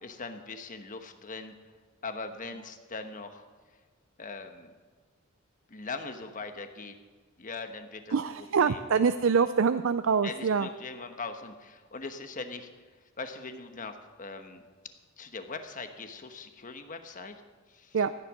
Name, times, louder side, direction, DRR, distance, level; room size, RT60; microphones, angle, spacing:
voice 1, 0.0-1.5 2.0-3.4 4.2-4.7 5.7-6.9 7.4-9.0 10.2-12.7 13.2-14.6 15.2-17.4 17.7-18.1, left 3 dB, 40° left, 7 dB, 1.2 m, -41 dB
voice 2, 8.1-10.7 17.9-18.1, right 6 dB, 65° right, 12 dB, 0.5 m, -25 dB
14.5 x 10.0 x 6.2 m, 1.5 s
head